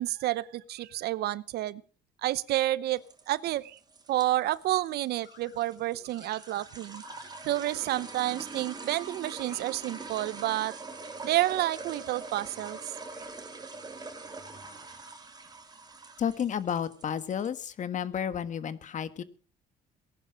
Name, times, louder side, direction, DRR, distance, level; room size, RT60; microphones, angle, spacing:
voice 1, 0.0-1.8 2.2-3.8 4.1-7.0 7.4-10.8 11.2-12.8, right 15 dB, 70° right, 19 dB, 0.8 m, -30 dB
sound 1, 3.0-17.5, right 3 dB, 25° right, 3.0 m, -44 dB
sound 2, 4.2-4.9 5.1-7.8 8.0-8.9 9.5-10.4 11.4-13.2 14.3-15.5, left 7 dB, 65° left, 4.2 m, -58 dB
voice 2, 16.2-19.2, left 8 dB, 45° left, 14 dB, 1.5 m, -31 dB
19.0 x 11.0 x 6.2 m, 0.41 s
cardioid pair, 110°, 17 cm